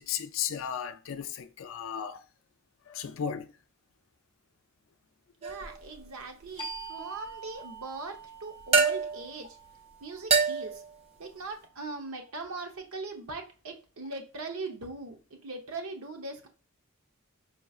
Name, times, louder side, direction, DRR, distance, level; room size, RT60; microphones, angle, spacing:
voice 1, 0.0-2.2 2.9-3.5, left 8 dB, 65° left, 0.4 m, -35 dB
sound 1, 5.4-5.8 8.7-9.3 10.3-10.9, right 5 dB, 30° right, 0.6 m, -25 dB
voice 2, 5.4-9.6 10.0-10.8 11.2-15.2 15.4-16.5, right 3 dB, 85° right, 1.0 m, -40 dB
sound 2, 6.6-11.9, right 4 dB, 20° left, 0.6 m, -46 dB
5.2 x 3.1 x 2.4 m
head